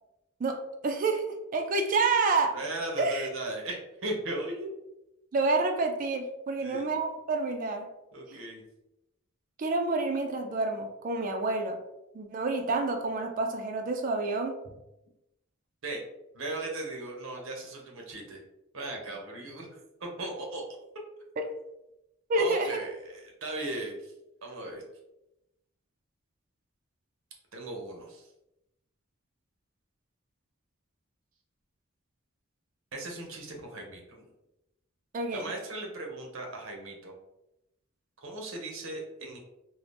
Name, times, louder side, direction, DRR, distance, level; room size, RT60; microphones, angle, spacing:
voice 1, 0.8-1.2 1.5-2.5 3.0-3.3 5.3-7.8 8.3-8.4 9.6-11.8 12.1-14.5 21.4-21.5 22.3-22.7 35.1-35.5, right 3 dB, 40° right, 3 dB, 0.3 m, -28 dB
voice 2, 2.5-4.7 6.6-7.0 8.1-8.6 15.8-16.0 16.3-18.4 18.7-19.7 20.0-20.6 22.4-24.0 24.4-24.8 27.5-28.3 32.9-34.3 35.3-37.2 38.2-39.4, right 2 dB, 75° right, 1 dB, 0.7 m, -37 dB
2.7 x 2.0 x 3.2 m, 0.90 s
head